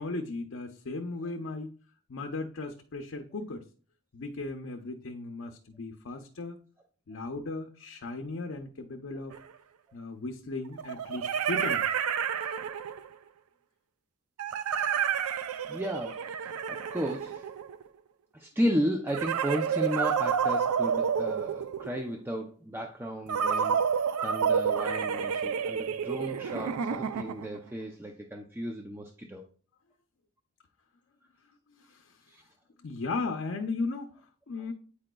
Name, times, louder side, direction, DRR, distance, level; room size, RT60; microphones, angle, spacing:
voice 1, 0.0-1.7 2.1-3.6 4.1-6.6 7.1-9.4 9.9-11.9 31.7-32.1 32.8-34.1 34.5-34.7, left 3 dB, 60° left, 3 dB, 0.5 m, -36 dB
sound 1, 9.3-9.4 10.8-13.1 14.4-17.9 19.1-22.1 23.3-27.6, right 7 dB, 85° right, 0.4 m, -29 dB
voice 2, 15.7-17.4 18.3-23.8 24.2-29.4 32.3-32.4, equal, 10° right, 2 dB, 0.4 m, -34 dB
8.6 x 4.9 x 2.2 m, 0.42 s
head